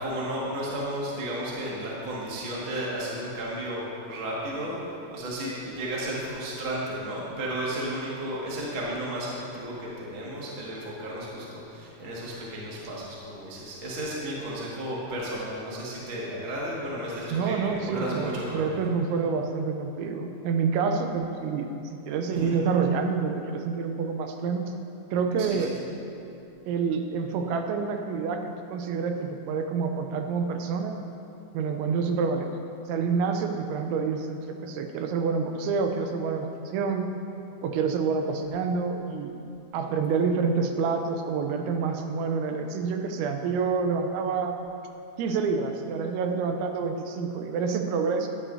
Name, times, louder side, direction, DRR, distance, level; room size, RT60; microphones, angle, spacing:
voice 1, 0.0-18.9 22.3-22.6 25.4-25.9, right 1 dB, 55° right, -6 dB, 1.4 m, -33 dB
voice 2, 17.3-24.7 25.1-25.7 26.7-30.9 31.5-32.5 32.9-37.2 37.6-39.3 39.7-44.5 45.2-48.3, right 5 dB, 85° right, 5 dB, 2.9 m, -28 dB
14.0 x 10.0 x 2.7 m, 2.7 s
omnidirectional pair, 5.3 m